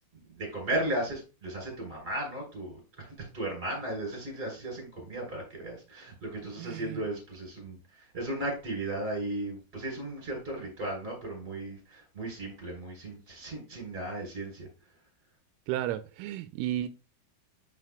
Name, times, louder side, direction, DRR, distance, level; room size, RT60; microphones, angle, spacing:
voice 1, 0.3-14.7, right 1 dB, 15° right, 3.3 m, -36 dB
voice 2, 6.6-7.0 15.7-16.9, right 13 dB, 85° right, 3.0 m, -33 dB
9.3 x 6.6 x 2.2 m
omnidirectional pair, 5.7 m